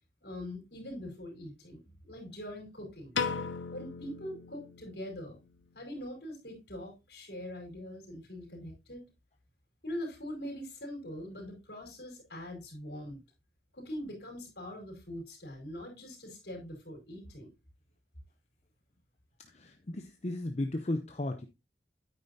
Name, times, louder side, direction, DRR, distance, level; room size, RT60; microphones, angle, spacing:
voice 1, 0.2-3.1 3.7-5.4 5.7-9.0 9.8-13.2 13.7-17.5, left 1 dB, 65° left, 4.8 m, -42 dB
Piano, 3.1-5.4, left 5 dB, 85° left, 0.7 m, -37 dB
voice 2, 19.5-21.5, left 1 dB, 35° left, 0.6 m, -35 dB
9.2 x 9.1 x 2.7 m
head